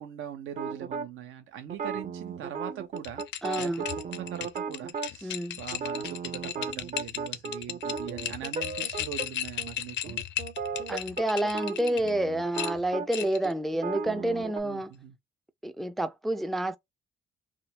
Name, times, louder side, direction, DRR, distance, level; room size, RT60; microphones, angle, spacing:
voice 1, 0.0-3.2 3.6-10.2 14.6-15.1, right 10 dB, 85° right, 1.0 m, -41 dB
sound 1, 0.6-1.1 1.7-5.1 5.7-9.3 9.6-9.7 10.1-14.6, right 5 dB, 40° right, 0.7 m, -36 dB
sound 2, 3.0-12.1 12.5-13.5, left 11 dB, 65° left, 0.4 m, -36 dB
voice 2, 3.4-3.8 5.2-5.6 10.9-14.9 15.6-16.8, right 1 dB, ahead, 0.3 m, -29 dB
2.8 x 2.3 x 2.8 m
cardioid pair, 90°, 20 cm